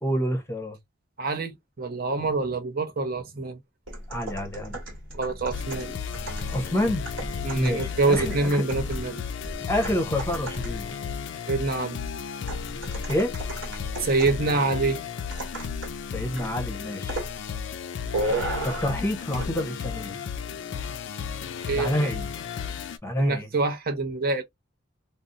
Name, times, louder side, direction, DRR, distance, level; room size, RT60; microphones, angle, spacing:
voice 1, 0.0-0.8 4.1-4.8 6.5-7.0 7.5-8.6 9.7-10.9 13.1-13.3 16.1-17.2 18.6-20.2 21.8-22.3 23.0-23.5, equal, 15° left, 0.7 m, -28 dB
voice 2, 1.2-3.6 5.1-5.9 7.4-9.3 11.5-12.0 14.0-15.0 21.7-22.1 23.2-24.4, right 3 dB, 45° right, 0.7 m, -26 dB
sound 1, 3.9-11.0 12.5-14.5 15.3-16.0 16.4-16.6 17.1-17.4 18.1-19.0 19.3-19.5, right 1 dB, 65° right, 1.2 m, -34 dB
sound 2, 5.5-23.0, left 7 dB, 60° left, 0.4 m, -34 dB
2.5 x 2.0 x 3.7 m
head